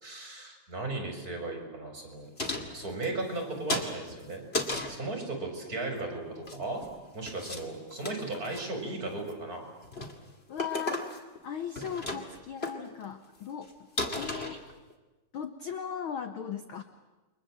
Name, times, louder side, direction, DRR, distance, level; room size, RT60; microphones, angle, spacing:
voice 1, 0.0-2.3 2.7-4.4 4.9-6.8 7.1-9.6, right 2 dB, 25° right, 3 dB, 5.6 m, -36 dB
sound 1, 2.4-3.4 3.7-5.0 6.3-6.9 7.3-7.6 7.9-8.6 9.1-9.4 9.8-10.2 10.6-11.4 11.6-12.4 12.6-12.7 13.3-13.4 13.6-13.7 14.0-14.9, left 2 dB, 20° left, 2.1 m, -34 dB
voice 2, 10.5-13.7 14.1-14.6 15.3-16.8, left 8 dB, 60° left, 8 dB, 1.5 m, -38 dB
29.5 x 23.5 x 7.6 m, 1.1 s
omnidirectional pair, 3.5 m